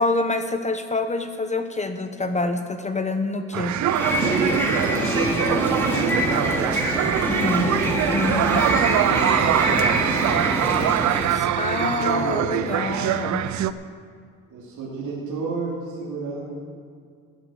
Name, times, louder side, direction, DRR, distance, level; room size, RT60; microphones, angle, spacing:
voice 1, 0.0-3.7 7.3-7.6 8.1-8.8 11.3-13.5, left 3 dB, 25° left, 8 dB, 0.9 m, -26 dB
sound 1, 3.5-13.7, right 11 dB, 70° right, 0.6 m, -24 dB
sound 2, 3.7-11.4, equal, 10° left, 2.9 m, -25 dB
voice 2, 4.7-7.7 8.5-10.9 11.7-12.8 14.5-16.4, right 3 dB, 90° right, -5 dB, 2.8 m, -31 dB
15.5 x 9.0 x 6.4 m, 2.1 s
cardioid pair, 90°, 30 cm